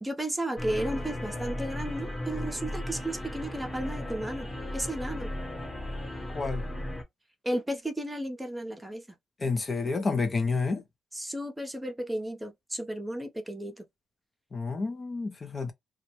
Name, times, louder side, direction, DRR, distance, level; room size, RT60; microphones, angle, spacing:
voice 1, 0.0-4.5 4.7-5.3 7.4-9.0 11.1-13.8, right 1 dB, 10° right, 0.6 m, -33 dB
sound 1, 0.6-7.0, left 1 dB, 15° left, 0.9 m, -35 dB
voice 2, 6.3-6.6 9.4-10.8 14.5-15.7, left 4 dB, 30° left, 0.4 m, -29 dB
2.3 x 2.1 x 2.9 m
cardioid pair, 90°, 0 cm